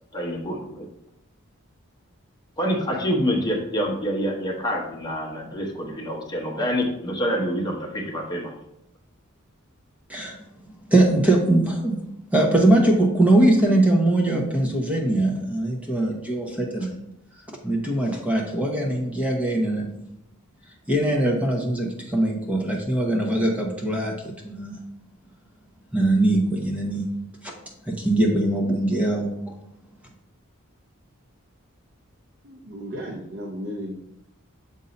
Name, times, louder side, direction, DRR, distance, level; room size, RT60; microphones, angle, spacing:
voice 1, 0.1-0.9 2.6-8.5, equal, 20° left, -1 dB, 0.9 m, -26 dB
voice 2, 10.9-12.0 12.3-16.9 17.6-19.9 20.9-24.1 24.4-24.8 25.9-27.1 27.9-29.6, right 1 dB, 5° right, 0 dB, 0.8 m, -21 dB
voice 3, 32.4-33.9, equal, 60° right, 1 dB, 0.7 m, -34 dB
6.9 x 2.7 x 5.1 m, 0.80 s
head